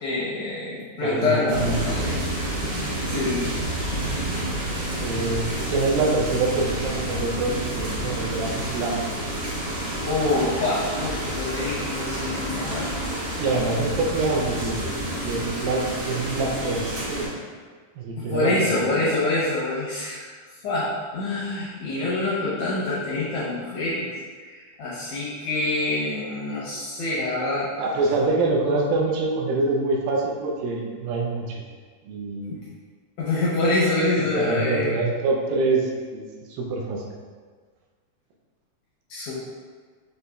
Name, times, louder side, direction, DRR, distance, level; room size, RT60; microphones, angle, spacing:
voice 1, 0.0-2.2 2.7-3.8 10.1-13.1 18.3-20.3 20.6-24.1 24.4-27.7 32.4-32.6 33.2-35.0 39.1-39.4, left 2 dB, 80° left, -7 dB, 1.7 m, -26 dB
voice 2, 1.0-1.9 5.0-9.0 13.4-17.3 18.0-18.9 27.8-31.6 32.0-32.6 34.1-36.2 36.5-37.0, right 3 dB, 85° right, -1 dB, 2.3 m, -25 dB
sound 1, 1.5-17.3, right 1 dB, 60° right, 1.3 m, -29 dB
6.5 x 2.6 x 2.3 m, 1.5 s
omnidirectional pair, 4.0 m